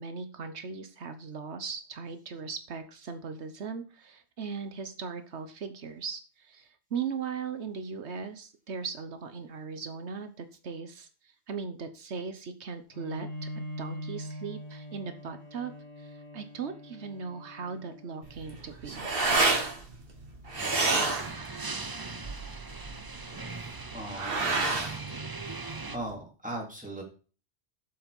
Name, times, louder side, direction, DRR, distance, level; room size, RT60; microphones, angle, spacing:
voice 1, 0.0-15.7 16.0-19.1, right 5 dB, 80° right, 9 dB, 1.3 m, -38 dB
Bowed string instrument, 12.9-18.6, equal, 75° left, 4.4 m, -42 dB
sound 1, 18.2-26.1, right 3 dB, 55° right, 2.1 m, -30 dB
sound 2, 20.6-26.0, right 3 dB, 25° right, 0.7 m, -40 dB
voice 2, 23.9-24.8 25.9-27.0, right 1 dB, 5° right, -2 dB, 3.9 m, -38 dB
8.3 x 7.4 x 5.4 m, 0.36 s
omnidirectional pair, 1.1 m